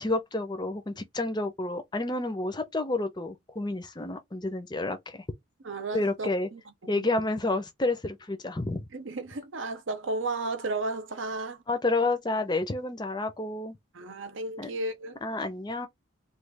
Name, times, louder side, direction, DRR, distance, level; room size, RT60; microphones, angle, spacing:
voice 1, 0.0-5.2 5.9-6.5 6.9-8.9 11.7-13.8 14.6-14.7 15.2-15.9, left 2 dB, 20° left, 0.6 m, -30 dB
voice 2, 5.6-7.0 8.9-11.6 13.9-15.2, right 2 dB, 65° right, 0.7 m, -34 dB
3.1 x 2.3 x 3.4 m
head